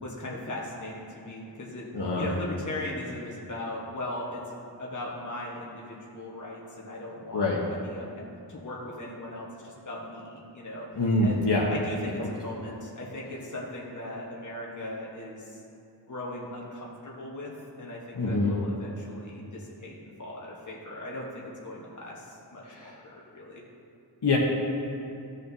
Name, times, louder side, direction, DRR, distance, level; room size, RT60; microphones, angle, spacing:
voice 1, 0.0-1.9 2.2-8.1 8.5-10.9 11.2-15.6 16.1-23.6, left 1 dB, 45° left, -4 dB, 1.2 m, -38 dB
voice 2, 1.9-2.3 7.3-7.6 10.9-11.7 12.2-12.3 18.2-18.5 22.7-22.9 24.2-24.4, left 2 dB, 70° left, -3 dB, 1.0 m, -25 dB
14.0 x 6.4 x 2.7 m, 2.5 s
wide cardioid pair, 65°, 42 cm